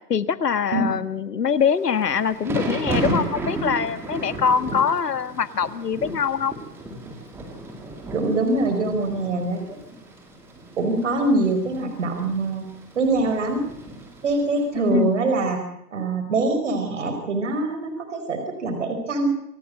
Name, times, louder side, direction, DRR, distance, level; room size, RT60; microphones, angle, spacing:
voice 1, 0.1-6.5 14.9-15.1, left 7 dB, 75° left, 14 dB, 1.6 m, -23 dB
Thunder / Rain, 1.7-14.8, right 2 dB, 5° right, 2.0 m, -33 dB
voice 2, 8.1-10.0 10.8-12.7 12.9-13.7 14.2-15.6 15.9-19.3, right 2 dB, 45° right, 6 dB, 4.8 m, -24 dB
26.5 x 12.5 x 8.9 m, 0.79 s
hypercardioid pair, 160°, 48 cm